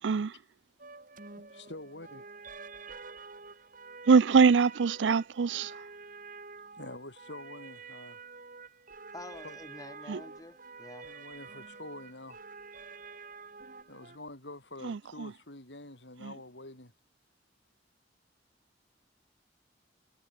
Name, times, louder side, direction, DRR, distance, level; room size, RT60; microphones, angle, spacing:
sound 1, 0.8-14.2, right 4 dB, 50° right, 3.5 m, -48 dB
voice 1, 1.5-2.2 6.7-8.2 9.4-9.8 11.0-12.4 13.9-16.9, left 2 dB, 80° left, 5.8 m, -46 dB
voice 2, 4.1-5.7 10.1-10.2 14.8-15.3 16.2-16.3, right 5 dB, 85° right, 0.5 m, -23 dB
voice 3, 9.1-11.1, left 2 dB, 20° left, 1.6 m, -48 dB
head